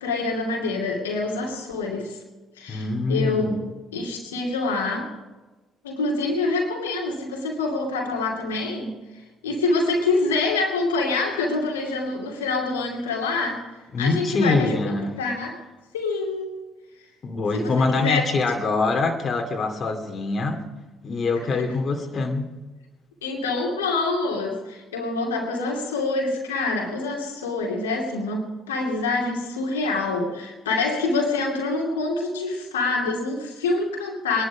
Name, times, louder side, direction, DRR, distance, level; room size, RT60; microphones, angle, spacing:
voice 1, 0.0-2.2 2.6-3.5 3.9-5.1 5.8-8.9 9.4-13.7 14.0-15.6 15.9-16.5 17.5-18.3 21.5-21.7 23.2-34.4, left 3 dB, 85° left, -1 dB, 2.5 m, -26 dB
voice 2, 2.7-3.6 13.9-15.1 17.2-20.7 21.0-22.5, left 3 dB, 45° left, 3 dB, 2.5 m, -24 dB
23.0 x 11.5 x 5.1 m, 1.2 s
hypercardioid pair, 50°, 0 cm